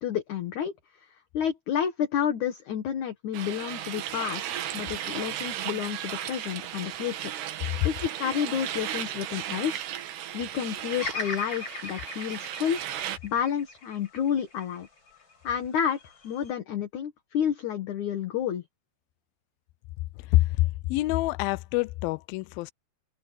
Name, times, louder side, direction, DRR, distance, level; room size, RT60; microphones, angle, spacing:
voice 1, 0.0-7.3 7.8-9.9 10.3-12.8 13.2-14.9 15.4-18.6, left 9 dB, 55° left, 2.6 m, -30 dB
sound 1, 3.3-13.2, right 11 dB, 80° right, 3.7 m, -35 dB
Bird vocalization bird call bird song, 11.0-15.2 15.8-16.5, left 2 dB, 30° left, 6.3 m, -38 dB
voice 2, 20.3-22.7, left 18 dB, 80° left, 2.2 m, -26 dB
omnidirectional pair, 4.7 m